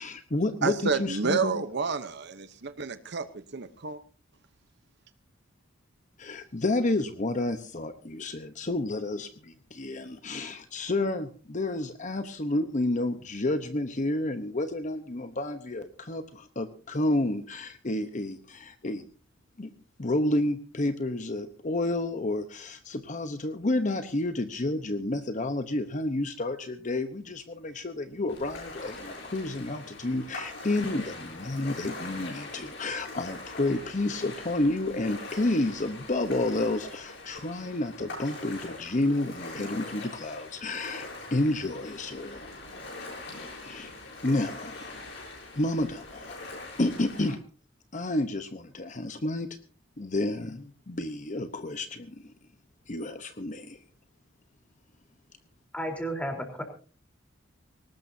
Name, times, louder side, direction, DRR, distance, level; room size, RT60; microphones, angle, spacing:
voice 1, 0.0-1.6 6.2-19.0 19.6-19.7 20.0-42.5 43.6-43.9 44.2-44.9 45.6-46.4 46.8-47.4 47.9-49.5 50.0-52.3 52.9-53.8, left 2 dB, 40° left, 1.0 m, -30 dB
voice 2, 0.6-4.0, right 5 dB, 60° right, 0.9 m, -30 dB
Ocean, 28.3-47.3, left 2 dB, 65° left, 7.6 m, -42 dB
voice 3, 55.7-56.6, right 1 dB, 5° left, 3.8 m, -32 dB
21.0 x 18.5 x 2.8 m
head